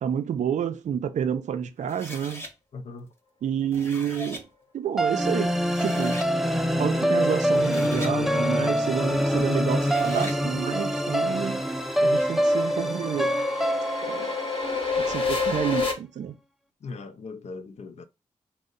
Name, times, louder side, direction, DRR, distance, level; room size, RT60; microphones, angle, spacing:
voice 1, 0.0-2.5 3.4-4.4 4.7-5.5 5.8-6.3 6.8-11.6 12.0-13.4 14.1-14.3 15.0-16.3, right 8 dB, 70° right, 0.4 m, -29 dB
sound 1, 1.9-2.5 3.5-4.4 5.3-5.4 5.6-6.3 7.4-8.2 9.6-10.4, left 1 dB, 20° left, 0.9 m, -40 dB
voice 2, 2.7-3.1 16.8-18.0, left 4 dB, 60° left, 0.5 m, -39 dB
sound 2, 5.0-15.2, equal, ahead, 0.5 m, -25 dB
sound 3, 9.3-15.9, left 4 dB, 45° left, 1.1 m, -31 dB
2.6 x 2.1 x 3.7 m
cardioid pair, 50°, 13 cm